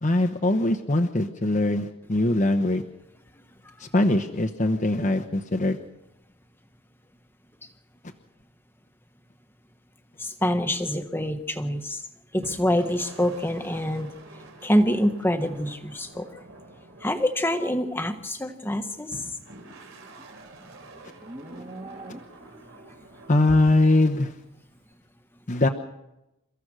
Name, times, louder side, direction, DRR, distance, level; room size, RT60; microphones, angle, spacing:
voice 1, 0.0-2.8 3.8-5.8 23.3-24.3 25.5-25.7, left 2 dB, 35° left, 4 dB, 1.0 m, -22 dB
voice 2, 10.2-12.0 12.3-14.1 14.6-16.3 17.0-19.2, equal, 10° left, 6 dB, 1.4 m, -26 dB
sound 1, 12.4-18.3 19.1-23.6, right 2 dB, 65° right, 4.0 m, -48 dB
Livestock farm animals working animals, 19.4-22.7, right 1 dB, 25° right, 2.0 m, -44 dB
29.0 x 15.0 x 6.3 m, 0.92 s
head